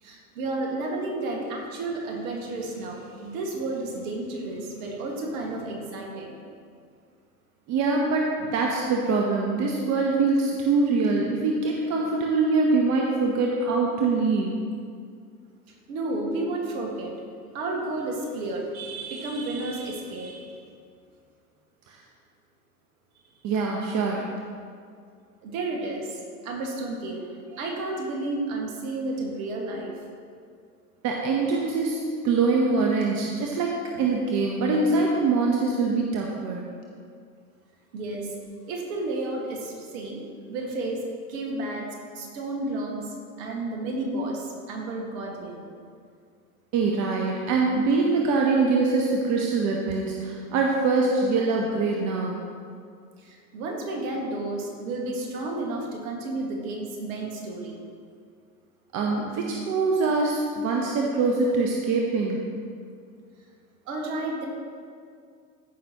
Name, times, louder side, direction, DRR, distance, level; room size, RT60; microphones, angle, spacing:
voice 1, 0.0-6.4 15.7-17.1 17.5-20.5 25.4-29.9 33.9-34.0 37.9-38.3 38.7-40.2 40.5-41.0 41.3-41.9 42.1-45.7 53.2-57.8 63.9-64.5, right 2 dB, 60° right, 0 dB, 1.9 m, -32 dB
voice 2, 7.7-14.6 21.9-22.0 23.4-24.3 31.0-36.6 46.7-52.4 58.9-62.4, right 3 dB, 35° right, -1 dB, 1.0 m, -24 dB
14.5 x 5.9 x 3.0 m, 2.2 s
hypercardioid pair, 90°, 46 cm